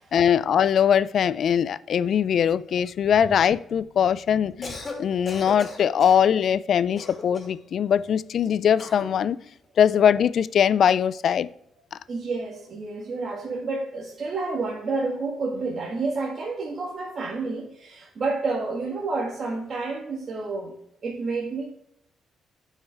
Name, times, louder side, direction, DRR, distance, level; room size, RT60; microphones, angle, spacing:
voice 1, 0.1-9.4 9.8-11.5 11.9-12.0, left 8 dB, 60° left, 0.3 m, -21 dB
Cough, 4.5-5.0 5.3-6.2 7.0-7.6 8.8-9.1, left 3 dB, 35° left, 2.7 m, -36 dB
voice 2, 12.1-20.7 21.0-21.6, right 3 dB, 50° right, 1.7 m, -29 dB
9.1 x 5.5 x 3.4 m
cardioid pair, 90°, 0 cm